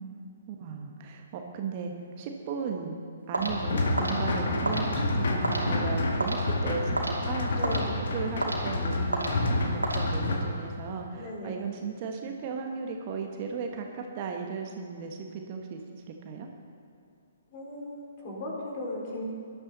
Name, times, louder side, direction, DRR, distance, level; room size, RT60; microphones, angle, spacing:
voice 1, 0.0-3.0 3.3-7.8 8.1-16.5, right 5 dB, 35° right, 3 dB, 1.3 m, -36 dB
sound 1, 3.3-10.6, right 1 dB, 85° right, 2.7 m, -34 dB
sound 2, 3.4-10.4, left 2 dB, 55° left, 1.8 m, -29 dB
voice 2, 7.6-8.0 11.1-11.6 17.5-19.3, left 1 dB, 40° left, -3 dB, 4.1 m, -37 dB
19.0 x 12.0 x 4.0 m, 2.6 s
figure-of-eight pair, 125°, 0 cm